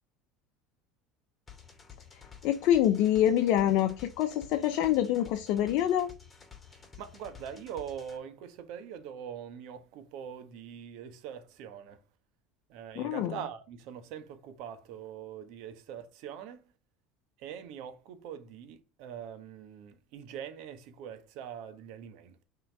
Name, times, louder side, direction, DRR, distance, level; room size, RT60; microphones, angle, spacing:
sound 1, 1.5-8.2, left 7 dB, 25° left, 2.7 m, -52 dB
voice 1, 2.4-6.1 13.0-13.3, left 11 dB, 65° left, 0.7 m, -26 dB
voice 2, 6.7-12.0 12.7-16.7 17.4-22.4, right 8 dB, 65° right, 1.4 m, -43 dB
6.0 x 3.8 x 4.7 m
hypercardioid pair, 80°, 0 cm